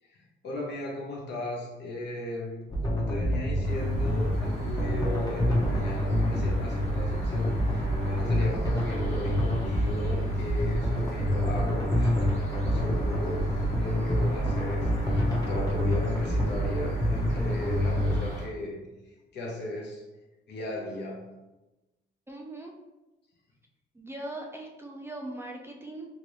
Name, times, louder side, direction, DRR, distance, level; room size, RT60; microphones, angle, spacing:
voice 1, 0.0-20.0 20.5-21.3, left 1 dB, 60° left, -1 dB, 0.9 m, -37 dB
sound 1, 2.7-18.3, equal, 20° left, 0.8 m, -27 dB
sound 2, 3.6-18.5, left 1 dB, 35° left, 1.1 m, -44 dB
voice 2, 22.3-22.7 23.9-26.1, right 1 dB, 10° right, 0 dB, 0.4 m, -40 dB
2.9 x 2.5 x 3.1 m, 1.0 s
cardioid pair, 90°, 20 cm